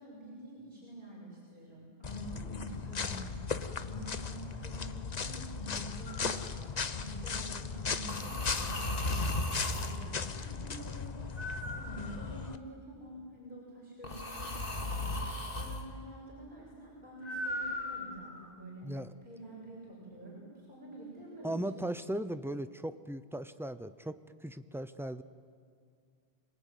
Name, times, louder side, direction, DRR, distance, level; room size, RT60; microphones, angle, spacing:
voice 1, 0.0-3.4 3.8-6.4 6.9-9.2 9.7-11.1 11.5-15.2 15.5-18.9 19.2-21.9, right 1 dB, 55° right, -5 dB, 6.8 m, -47 dB
sound 1, 2.0-12.6, left 5 dB, 45° left, 1.0 m, -37 dB
sound 2, 6.1-6.4 8.1-10.0 11.4-12.5 14.0-15.8 17.2-18.4, left 1 dB, 60° left, 2.3 m, -36 dB
voice 2, 18.8-19.1 21.4-25.2, right 1 dB, 5° right, 11 dB, 0.6 m, -38 dB
26.5 x 20.0 x 9.3 m, 2.1 s
omnidirectional pair, 1.0 m